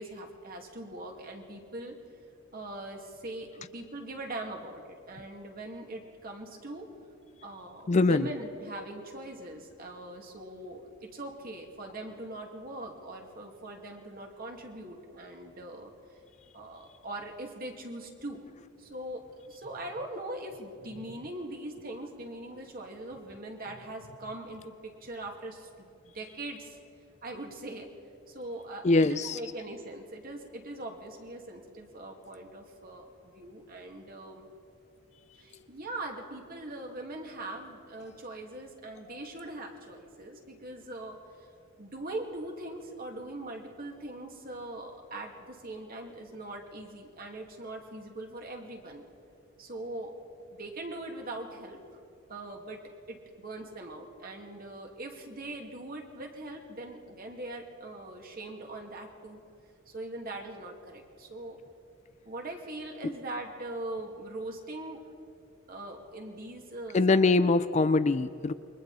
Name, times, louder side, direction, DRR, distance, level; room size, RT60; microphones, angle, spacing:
voice 1, 0.0-2.0 2.5-6.9 7.4-15.9 16.5-18.4 18.8-26.8 27.2-27.9 28.3-34.5 35.4-41.2 41.8-49.0 49.6-50.1 50.5-51.8 52.3-52.8 53.1-59.4 59.9-61.6 62.3-65.0 65.7-67.2, right 1 dB, 45° right, 2 dB, 2.4 m, -41 dB
voice 2, 7.9-8.3 28.8-29.4 39.1-39.2 63.0-63.1 66.9-68.5, left 3 dB, 35° left, 13 dB, 0.4 m, -23 dB
28.5 x 23.0 x 4.3 m, 2.5 s
head